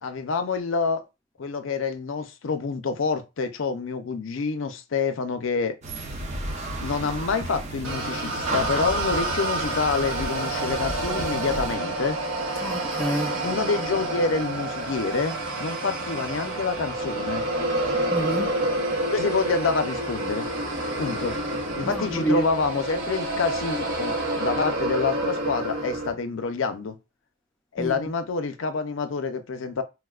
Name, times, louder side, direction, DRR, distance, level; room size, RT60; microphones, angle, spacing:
voice 1, 0.0-1.0 1.4-5.8 6.8-12.2 13.4-17.5 19.1-20.5 21.0-21.4 21.8-27.0 27.7-29.8, left 4 dB, 75° left, 0.5 m, -27 dB
sound 1, 5.8-11.8, right 1 dB, 35° right, 0.7 m, -34 dB
sound 2, 7.8-26.1, right 2 dB, 80° right, 0.9 m, -28 dB
voice 2, 12.6-13.4 18.1-18.6 21.8-22.5 27.8-27.9, right 1 dB, 5° left, 0.4 m, -28 dB
4.5 x 2.1 x 2.3 m
head